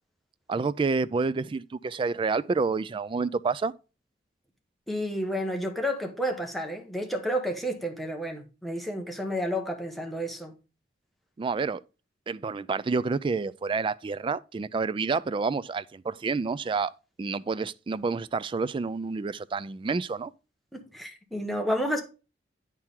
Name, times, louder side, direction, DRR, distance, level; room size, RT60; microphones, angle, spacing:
voice 1, 0.5-3.7 11.4-11.8 12.3-16.9 17.2-20.3, right 4 dB, 30° right, 0.3 m, -29 dB
voice 2, 4.9-10.5 20.7-22.0, equal, ahead, 1.2 m, -31 dB
9.6 x 4.5 x 3.7 m
head